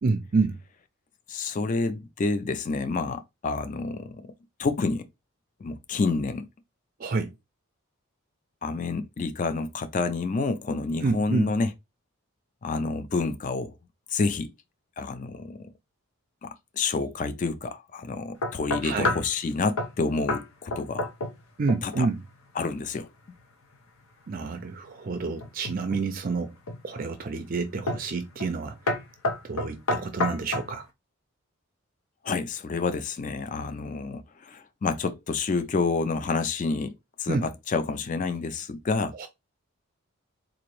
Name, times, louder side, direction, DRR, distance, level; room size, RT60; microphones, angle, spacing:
voice 1, 0.0-0.6 7.0-7.3 11.0-11.5 18.8-19.1 21.6-22.2 24.3-26.5 26.8-28.8 29.4-30.9 37.3-37.4 39.2-39.3, right 4 dB, 40° right, 0.4 m, -28 dB
voice 2, 1.3-4.3 4.6-5.1 5.6-6.5 8.6-11.7 12.6-13.7 14.1-14.5 15.0-15.7 16.4-21.1 21.8-22.1 22.5-23.1 32.2-39.1, left 4 dB, 35° left, 0.3 m, -29 dB
sound 1, 18.4-19.3 19.8-20.0 20.3-20.5 20.7-21.4 21.7-22.1 25.4-26.1 26.7-27.1 27.9-28.1 28.4-28.6 28.9-30.7, left 2 dB, 75° left, 0.8 m, -29 dB
3.9 x 2.5 x 3.0 m
head